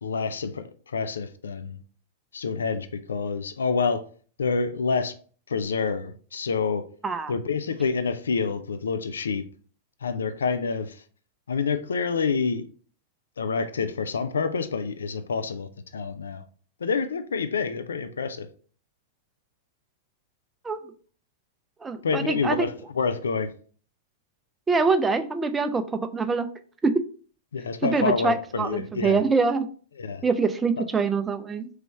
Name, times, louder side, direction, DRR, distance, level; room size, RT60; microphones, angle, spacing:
voice 1, 0.0-1.8 2.3-4.0 4.4-5.1 5.5-6.9 7.3-9.4 10.0-11.0 11.5-12.6 13.4-16.4 16.8-18.5 22.0-23.5 27.5-29.2 30.0-30.2, left 5 dB, 75° left, 0.3 m, -27 dB
voice 2, 21.8-22.7 24.7-26.5 26.8-26.9 27.8-29.7 30.2-31.7, right 4 dB, 15° right, 0.4 m, -24 dB
3.2 x 3.0 x 3.4 m
figure-of-eight pair, 100°, 0 cm